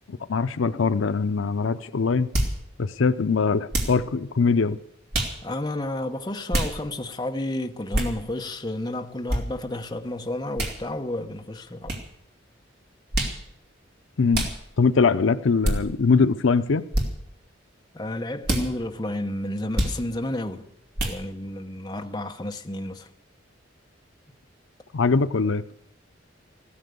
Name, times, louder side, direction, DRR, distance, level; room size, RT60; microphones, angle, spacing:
voice 1, 0.1-2.3 2.8-4.8 14.2-14.4 14.8-16.8 24.9-25.6, left 4 dB, 80° left, 0.6 m, -22 dB
sound 1, 2.3-2.6 3.7-4.0 5.1-5.4 6.5-6.7 7.9-8.1 9.3-9.4 10.6-10.8 11.9-12.0 13.1-13.4 14.3-14.6 15.6-15.8 16.9-17.1 18.4-18.7 19.7-20.0 21.0-21.2, right 1 dB, 50° right, 2.6 m, -25 dB
voice 2, 5.4-12.0 17.9-20.7 21.0-23.1, left 1 dB, 20° left, 0.9 m, -31 dB
15.5 x 13.0 x 6.8 m
head